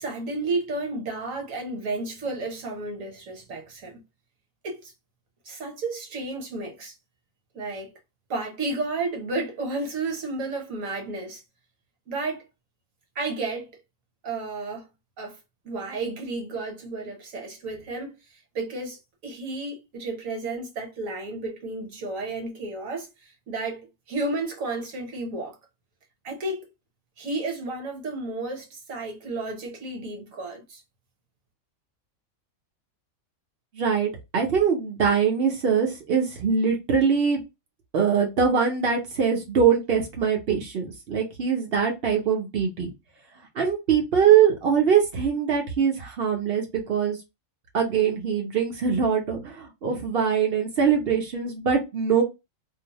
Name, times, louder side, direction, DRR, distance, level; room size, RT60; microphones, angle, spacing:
voice 1, 0.0-4.0 4.6-4.9 5.4-6.9 7.5-7.9 8.3-11.4 12.1-12.4 13.1-13.7 14.2-14.9 15.2-15.4 15.6-18.2 18.5-25.6 26.2-26.7 27.2-30.8, right 2 dB, 65° right, 1.3 m, -32 dB
voice 2, 33.7-37.4 37.9-42.9 43.6-47.2 47.7-52.2, right 7 dB, 50° right, 0.8 m, -23 dB
2.6 x 2.0 x 2.9 m
omnidirectional pair, 1.5 m